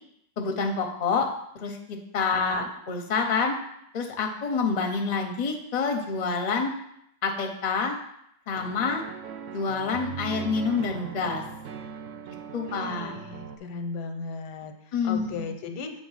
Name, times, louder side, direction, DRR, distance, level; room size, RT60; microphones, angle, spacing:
voice 1, 0.4-1.3 1.5-1.8 2.1-3.6 3.9-6.7 7.2-8.0 8.5-9.0 9.5-11.4 12.5-13.1 14.9-15.4, left 5 dB, 40° left, 3 dB, 0.6 m, -27 dB
sound 1, 8.5-13.6, right 8 dB, 65° right, 0.8 m, -39 dB
voice 2, 12.6-14.7 15.0-15.9, left 4 dB, 90° left, 6 dB, 1.3 m, -36 dB
7.1 x 3.3 x 5.6 m, 0.74 s
omnidirectional pair, 1.7 m